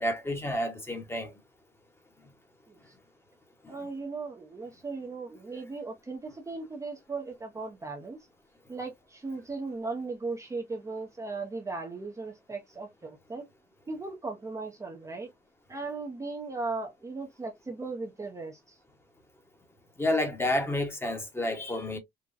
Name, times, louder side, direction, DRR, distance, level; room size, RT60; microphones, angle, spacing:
voice 1, 0.0-1.3 3.6-3.7 20.0-22.0, left 1 dB, 15° left, 1.0 m, -30 dB
voice 2, 3.7-8.2 8.7-13.4 13.9-15.3 15.7-18.7, right 3 dB, 20° right, 0.7 m, -37 dB
3.9 x 2.2 x 2.5 m
cardioid pair, 110°, 17 cm